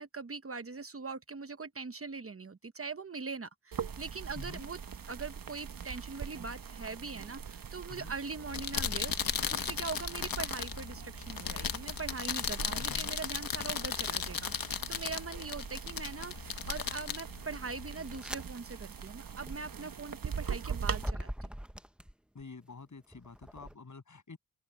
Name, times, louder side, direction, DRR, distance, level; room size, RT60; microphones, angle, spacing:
voice 1, 0.0-4.8 5.1-9.1 9.4-21.5, right 4 dB, 40° right, 1.0 m, -42 dB
sound 1, 3.7-21.1, right 6 dB, 70° right, 1.2 m, -43 dB
voice 2, 4.4-4.7 7.9-8.1 12.8-13.1 22.3-24.4, left 4 dB, 55° left, 7.8 m, -48 dB
sound 2, 8.4-18.2, left 7 dB, 75° left, 1.2 m, -36 dB
sound 3, 14.9-15.4 16.0-22.4 23.0-23.7, equal, 5° right, 1.0 m, -44 dB
open air
wide cardioid pair, 75°, 35 cm